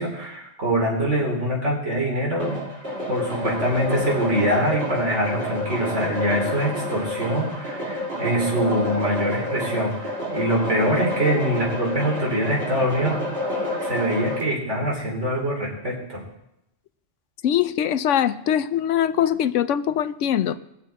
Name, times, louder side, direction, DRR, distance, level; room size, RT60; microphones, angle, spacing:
voice 1, 0.0-2.6 3.1-13.2 13.8-16.2, equal, 80° right, -2 dB, 3.5 m, -24 dB
sound 1, 2.4-14.4, left 1 dB, 55° right, 2.5 m, -29 dB
voice 2, 17.4-20.6, left 10 dB, 90° left, 13 dB, 1.0 m, -22 dB
20.5 x 7.4 x 4.2 m, 0.84 s
omnidirectional pair, 1.2 m